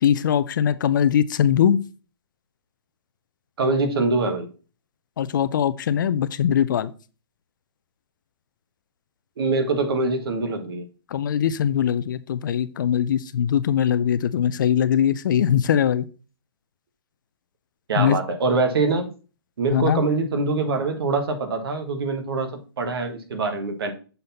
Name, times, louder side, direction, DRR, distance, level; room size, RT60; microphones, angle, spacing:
voice 1, 0.0-1.8 5.2-6.9 11.1-16.0 18.0-18.2 19.7-20.0, left 9 dB, 50° left, 15 dB, 0.4 m, -21 dB
voice 2, 3.6-4.5 9.4-10.8 17.9-19.1 19.6-22.5 22.8-23.9, right 3 dB, 65° right, 6 dB, 1.6 m, -24 dB
6.7 x 4.0 x 4.2 m, 0.34 s
hypercardioid pair, 165°, 13 cm